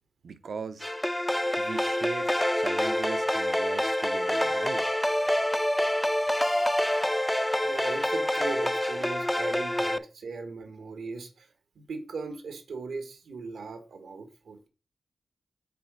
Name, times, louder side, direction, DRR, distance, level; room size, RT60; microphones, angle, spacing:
voice 1, 0.2-0.9 1.6-4.9 9.0-9.1, right 5 dB, 70° right, 0.7 m, -39 dB
sound 1, 0.8-10.0, left 1 dB, 10° left, 0.4 m, -27 dB
voice 2, 7.6-11.4 11.7-14.7, right 4 dB, 90° right, 1.4 m, -38 dB
5.9 x 4.2 x 6.1 m
wide cardioid pair, 90°, 0 cm